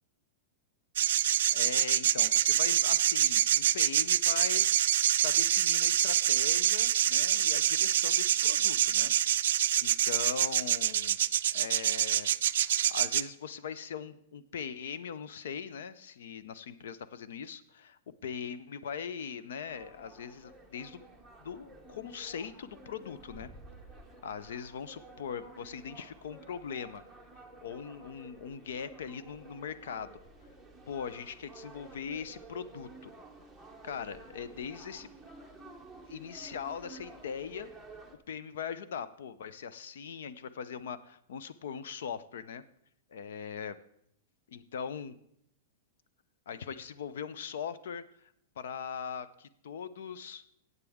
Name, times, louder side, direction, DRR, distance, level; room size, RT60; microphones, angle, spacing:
sound 1, 1.0-13.2, right 11 dB, 65° right, 0.3 m, -26 dB
voice 1, 1.5-4.7 5.2-9.1 9.4-11.2 11.5-12.3 12.9-21.0 21.4-23.5 24.2-27.0 27.6-30.2 30.9-33.1 33.8-35.1 36.0-37.7 38.3-42.6 43.1-43.8 44.5-45.2 46.5-48.0 48.6-50.4, left 7 dB, 70° left, 15 dB, 0.6 m, -40 dB
sound 2, 19.7-38.2, right 2 dB, 5° left, 0.9 m, -52 dB
15.0 x 8.1 x 3.6 m, 0.74 s
supercardioid pair, 170°, 0 cm